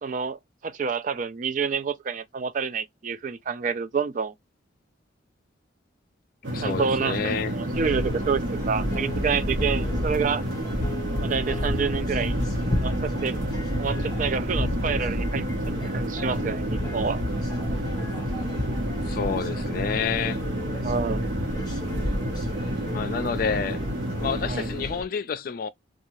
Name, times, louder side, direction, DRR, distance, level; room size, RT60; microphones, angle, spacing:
voice 1, 0.0-4.3 6.6-10.4 11.2-12.3 12.8-13.4 13.8-15.4 15.8-17.2 20.8-21.2 24.5-24.7, right 5 dB, 40° right, 0.3 m, -28 dB
sound 1, 6.4-25.0, right 1 dB, 75° right, 0.9 m, -30 dB
voice 2, 6.5-7.5 19.1-20.4 22.9-23.8 24.2-25.7, left 6 dB, 45° left, 0.3 m, -29 dB
sound 2, 7.7-25.0, left 1 dB, 20° left, 0.8 m, -32 dB
sound 3, 11.9-23.1, right 1 dB, 15° right, 0.9 m, -40 dB
2.7 x 2.3 x 2.9 m
head